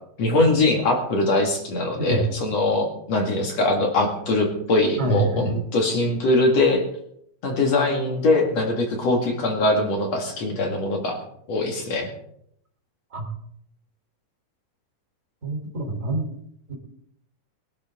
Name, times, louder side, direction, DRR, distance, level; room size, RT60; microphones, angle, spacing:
voice 1, 0.2-6.8 7.4-11.2 11.5-12.1, left 2 dB, 60° left, 1 dB, 3.1 m, -22 dB
voice 2, 5.0-5.5 13.1-13.3 15.4-16.3 16.7-16.8, right 2 dB, 25° right, 0 dB, 3.4 m, -25 dB
21.5 x 11.5 x 3.7 m, 0.71 s
omnidirectional pair, 3.4 m